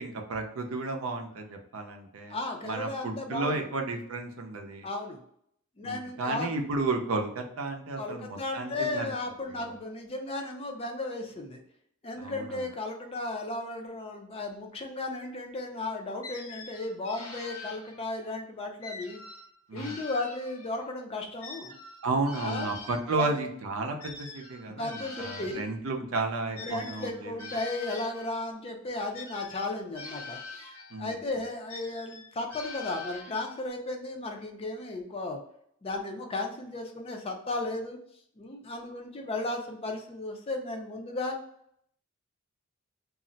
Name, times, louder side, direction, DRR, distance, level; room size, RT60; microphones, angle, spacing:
voice 1, 0.0-2.4 2.6-4.9 5.8-9.1 9.5-9.6 12.2-12.6 19.7-20.0 22.0-27.5 30.9-31.2, right 3 dB, 70° right, 4 dB, 0.5 m, -33 dB
voice 2, 2.3-3.7 4.8-5.2 5.8-6.5 8.0-11.6 12.0-19.2 19.7-21.7 22.4-22.8 23.2-23.4 24.7-25.7 26.6-30.6 31.0-35.4 35.8-38.0 38.4-41.4, left 2 dB, 25° left, 3 dB, 0.4 m, -35 dB
sound 1, 16.2-18.3 18.8-20.9 21.4-25.7 26.5-28.5 29.1-31.1 31.7-33.7, left 3 dB, 80° left, 0.9 m, -44 dB
2.4 x 2.0 x 3.8 m, 0.69 s
head